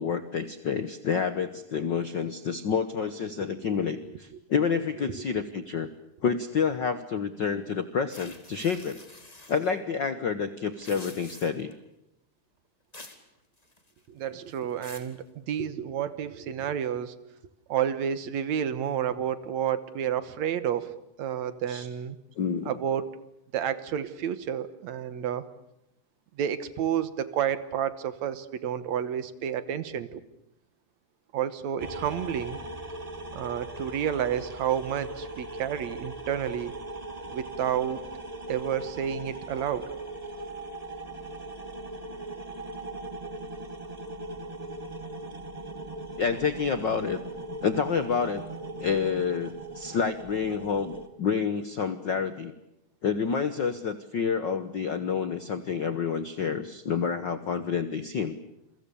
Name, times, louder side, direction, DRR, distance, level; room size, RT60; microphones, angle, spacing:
voice 1, 0.0-5.9 6.2-9.0 9.5-11.7 21.7-21.9 22.4-22.7 46.2-47.2 47.6-48.4 48.8-52.5 53.0-58.4, left 6 dB, 65° left, 11 dB, 1.1 m, -28 dB
sound 1, 8.1-9.7 10.7-11.7 12.9-13.2 13.6-14.1 14.5-15.1, left 2 dB, 15° left, 2.1 m, -47 dB
voice 2, 14.1-17.1 17.7-20.9 21.2-22.2 22.7-23.1 23.5-25.5 26.4-30.2 31.3-32.6 33.3-36.8 37.3-38.0 38.5-39.9, right 9 dB, 65° right, 13 dB, 2.3 m, -30 dB
sound 2, 31.8-51.1, right 2 dB, 15° right, 1.3 m, -39 dB
28.5 x 23.5 x 6.9 m, 0.83 s
omnidirectional pair, 3.6 m